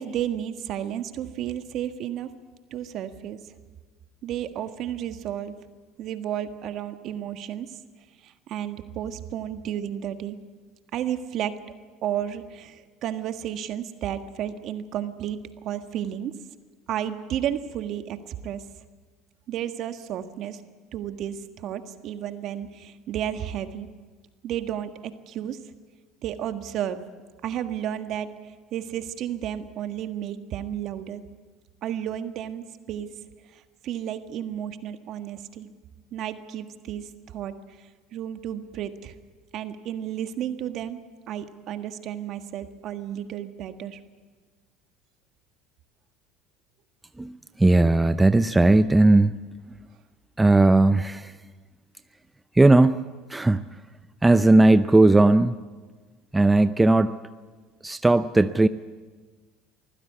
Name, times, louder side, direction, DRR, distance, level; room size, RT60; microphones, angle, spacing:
voice 1, 0.0-2.3 2.7-3.4 4.2-5.5 6.0-7.7 8.2-10.4 10.9-11.6 12.0-16.3 16.9-18.6 19.5-20.6 20.9-23.9 24.4-25.6 26.2-27.0 27.4-28.3 28.7-31.2 31.8-33.1 33.5-35.7 36.1-37.5 38.1-39.1 39.5-41.0 41.3-44.0, right 10 dB, 55° right, 8 dB, 1.5 m, -32 dB
voice 2, 47.2-49.4 50.4-51.4 52.5-53.0 53.3-53.6 54.2-55.6 56.3-57.1 57.8-58.7, right 2 dB, 10° right, 12 dB, 0.7 m, -18 dB
24.0 x 15.5 x 8.4 m, 1.4 s
hypercardioid pair, 75°, 0 cm